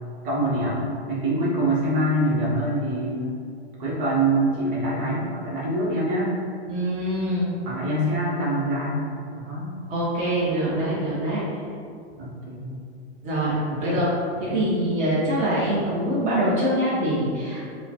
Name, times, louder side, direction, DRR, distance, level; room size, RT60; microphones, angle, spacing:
voice 1, 0.2-3.3 3.8-6.3 7.6-9.0 9.3-9.7 12.2-12.8 13.7-14.0 14.4-14.6, right 1 dB, 50° right, -6 dB, 1.5 m, -25 dB
voice 2, 6.7-7.5 9.9-11.4 13.2-14.0 14.4-17.6, right 1 dB, 20° right, -10 dB, 1.2 m, -24 dB
4.9 x 2.4 x 4.5 m, 2.4 s
hypercardioid pair, 145°, 34 cm